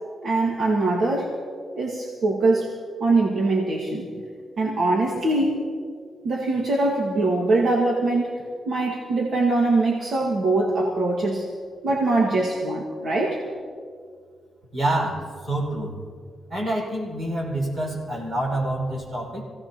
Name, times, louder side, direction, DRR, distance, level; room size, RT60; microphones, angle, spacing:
voice 1, 0.2-1.4 1.7-2.7 3.0-4.3 4.6-5.7 6.2-11.5 11.8-13.4, right 2 dB, 60° right, -2 dB, 1.8 m, -23 dB
voice 2, 14.7-16.0 16.5-19.4, right 1 dB, 35° right, -2 dB, 5.4 m, -27 dB
26.5 x 17.0 x 2.9 m, 2.1 s
wide cardioid pair, 140°, 0 cm